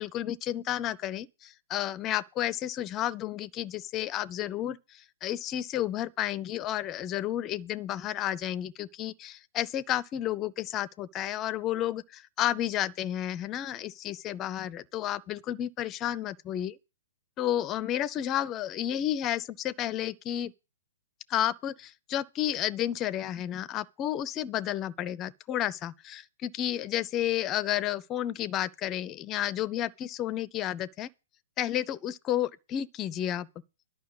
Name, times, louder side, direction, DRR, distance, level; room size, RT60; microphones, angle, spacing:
voice 1, 0.0-16.7 17.4-20.5 21.3-31.1 31.6-33.5, left 12 dB, 25° left, 0.6 m, -31 dB
11.5 x 5.7 x 8.0 m
figure-of-eight pair, 115°, 0 cm